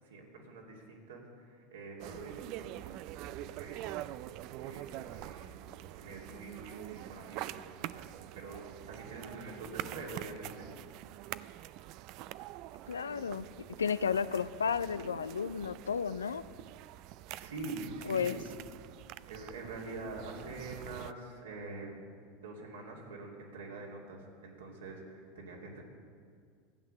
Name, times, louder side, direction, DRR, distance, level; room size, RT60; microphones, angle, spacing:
voice 1, 0.0-4.0 4.6-5.7 5.9-10.7 17.3-18.4 19.3-22.0 22.3-25.8, right 2 dB, 80° right, -1 dB, 2.4 m, -45 dB
sound 1, 2.0-21.1, right 14 dB, 55° right, 0.3 m, -45 dB
voice 2, 12.9-13.5 13.8-16.4 18.1-18.4, left 6 dB, 85° left, 15 dB, 0.4 m, -32 dB
14.0 x 8.4 x 6.5 m, 2.1 s
hypercardioid pair, 80°, 0 cm